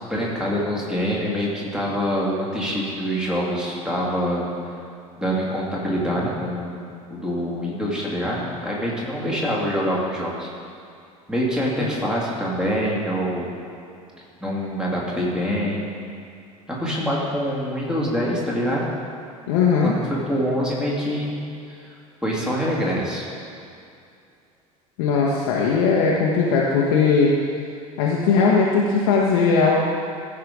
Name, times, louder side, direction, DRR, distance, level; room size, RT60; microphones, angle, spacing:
voice 1, 0.1-4.5 5.2-10.5 11.3-13.5 14.4-15.9 16.7-18.9 19.8-21.3 21.7-21.9 22.2-23.3, equal, 5° right, -5 dB, 2.4 m, -25 dB
voice 2, 19.5-20.0 25.0-27.4 28.0-29.8, left 5 dB, 55° left, -3 dB, 1.1 m, -19 dB
14.5 x 5.6 x 3.9 m, 2.5 s
figure-of-eight pair, 70°, 19 cm